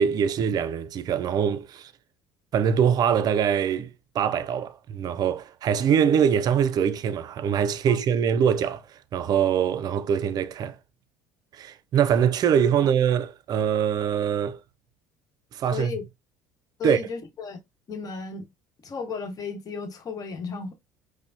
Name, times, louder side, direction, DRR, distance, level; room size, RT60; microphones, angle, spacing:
voice 1, 0.0-1.9 2.5-3.9 4.1-8.8 9.1-10.8 11.5-14.6 15.5-15.9 16.8-17.0, right 8 dB, 45° right, 0.4 m, -23 dB
voice 2, 15.7-16.0 16.8-17.6 17.9-18.5 18.8-20.7, left 4 dB, 40° left, 1.1 m, -34 dB
5.1 x 2.1 x 2.6 m
hypercardioid pair, 70°, 9 cm